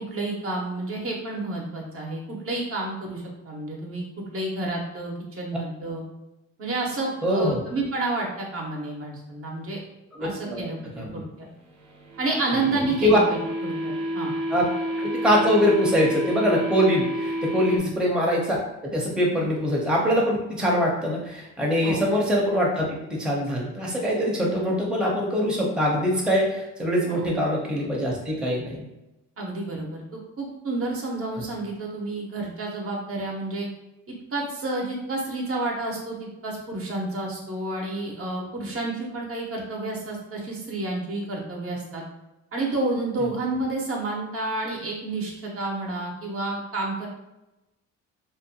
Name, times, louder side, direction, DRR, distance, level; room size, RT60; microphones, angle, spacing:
voice 1, 0.0-4.0 4.3-6.0 6.6-9.8 10.2-11.5 12.2-14.3 17.7-17.8 19.4-19.5 21.8-22.0 27.1-27.3 29.4-33.7 34.3-42.0 42.5-47.1, right 2 dB, 50° right, -1 dB, 0.7 m, -30 dB
voice 2, 7.2-7.6 10.1-10.7 11.0-11.1 13.0-13.2 14.5-14.7 15.0-28.8, equal, 5° right, -3 dB, 0.6 m, -23 dB
sound 1, 11.8-17.8, equal, 85° right, 0.8 m, -30 dB
2.5 x 2.1 x 2.7 m, 0.97 s
cardioid pair, 90°, 30 cm